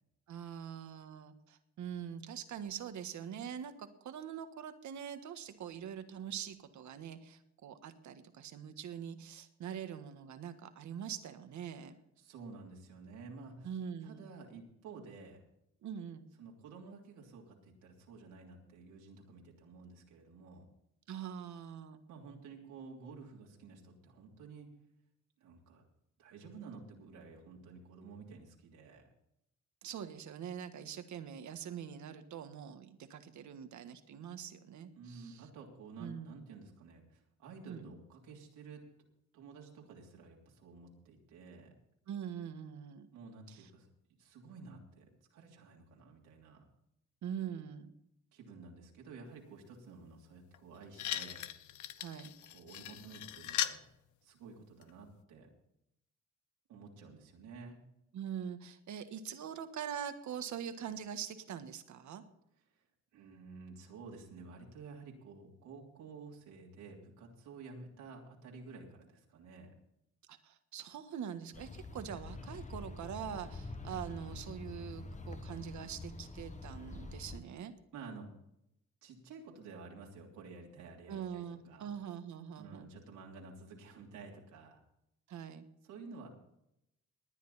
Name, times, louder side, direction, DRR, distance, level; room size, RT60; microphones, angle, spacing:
voice 1, 0.3-11.9 13.6-14.3 15.8-16.2 21.1-22.0 29.8-35.4 36.0-36.4 37.7-37.9 42.1-43.1 43.5-43.6 47.2-47.9 52.0-52.3 58.1-62.2 70.3-77.7 81.1-82.9 85.3-85.6, right 8 dB, 70° right, 9 dB, 1.6 m, -43 dB
voice 2, 12.2-13.8 14.0-15.4 16.4-20.7 22.1-24.7 25.4-25.8 26.2-29.1 35.0-38.8 39.3-41.7 43.1-43.9 44.2-46.6 48.3-51.5 52.4-53.9 54.2-55.5 56.7-57.8 63.1-69.7 77.9-78.3 79.0-81.9 82.6-84.8 85.8-86.3, right 4 dB, 90° right, -1 dB, 3.2 m, -52 dB
sound 1, 50.5-50.6 50.9-53.8 54.8-54.9, left 12 dB, 75° left, 0.9 m, -39 dB
sound 2, 71.5-77.4, left 2 dB, 25° left, 1.4 m, -46 dB
20.0 x 9.5 x 4.2 m, 0.80 s
cardioid pair, 90°, 30 cm